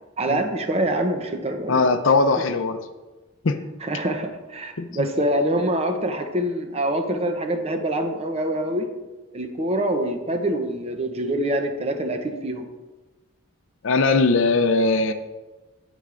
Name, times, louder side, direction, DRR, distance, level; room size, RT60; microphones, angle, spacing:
voice 1, 0.2-1.9 3.8-8.8 9.3-12.7, right 1 dB, 30° right, 5 dB, 0.7 m, -25 dB
voice 2, 1.7-2.8 3.4-3.6 4.8-5.1 13.8-15.1, left 3 dB, 65° left, 9 dB, 0.5 m, -20 dB
9.2 x 8.6 x 2.5 m, 1.2 s
head